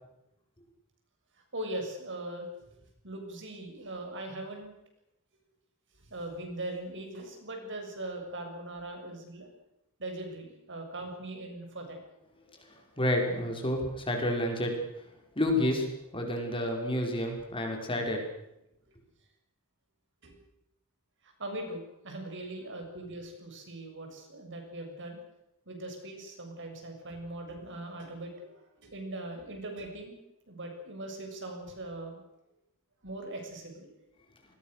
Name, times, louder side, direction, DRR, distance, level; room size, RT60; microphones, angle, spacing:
voice 1, 1.5-2.7 3.0-4.7 6.0-9.5 10.0-12.0 20.2-20.4 21.2-25.2 25.7-30.2 30.5-32.2 33.0-33.9, right 1 dB, 55° right, 3 dB, 7.3 m, -40 dB
voice 2, 13.0-14.8 15.4-15.9 16.1-18.2, left 1 dB, 25° left, 2 dB, 5.4 m, -29 dB
29.0 x 21.0 x 6.7 m, 0.82 s
head